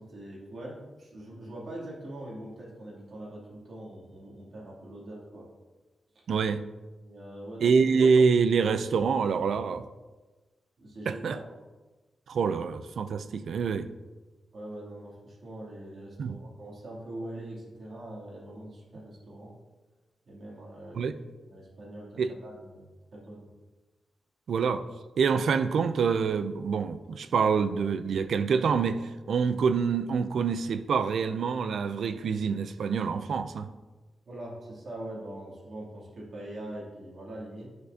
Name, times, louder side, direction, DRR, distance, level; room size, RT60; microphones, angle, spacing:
voice 1, 0.0-5.5 7.0-7.7 10.8-11.5 14.5-19.6 20.3-21.0 21.5-22.9 23.1-23.5 34.3-37.7, right 1 dB, 50° right, -5 dB, 2.7 m, -42 dB
voice 2, 6.3-6.6 7.6-9.8 11.1-11.4 12.3-13.9 16.2-16.4 21.0-21.1 22.2-22.3 24.5-24.8 25.2-33.7, right 5 dB, 80° right, 11 dB, 0.4 m, -26 dB
10.5 x 6.3 x 2.8 m, 1.2 s
wide cardioid pair, 160°, 0 cm